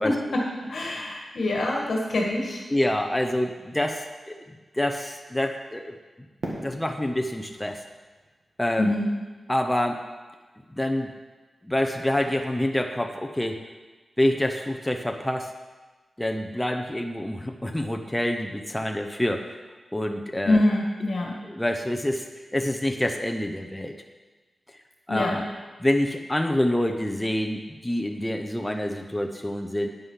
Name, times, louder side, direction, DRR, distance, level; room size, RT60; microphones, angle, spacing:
voice 1, 0.0-2.6 8.8-9.1 20.4-21.4 25.1-25.3, left 2 dB, 60° left, -1 dB, 1.9 m, -25 dB
voice 2, 2.7-4.4 4.7-6.3 6.6-7.8 8.6-8.9 9.5-10.0 10.7-11.1 11.6-13.6 14.2-15.5 16.2-19.7 19.9-20.6 21.4-22.3 22.5-24.0 24.7-24.8 25.1-25.4 25.8-29.9, left 1 dB, 10° left, 4 dB, 0.6 m, -27 dB
Fireworks, 6.4-9.4, right 2 dB, 55° right, 2.2 m, -40 dB
9.7 x 8.9 x 5.7 m, 1.3 s
wide cardioid pair, 135°, 0 cm